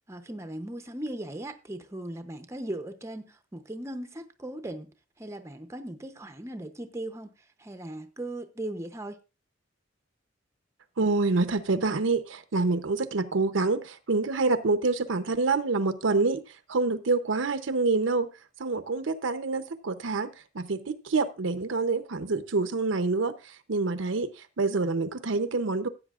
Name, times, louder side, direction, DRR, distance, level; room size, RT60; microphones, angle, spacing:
voice 1, 0.1-4.9 5.2-9.2, right 1 dB, 15° right, 0.7 m, -38 dB
voice 2, 11.0-16.4 16.7-18.3 18.6-23.3 23.7-24.3 24.6-25.9, right 3 dB, 75° right, 0.7 m, -26 dB
15.5 x 8.3 x 2.4 m
head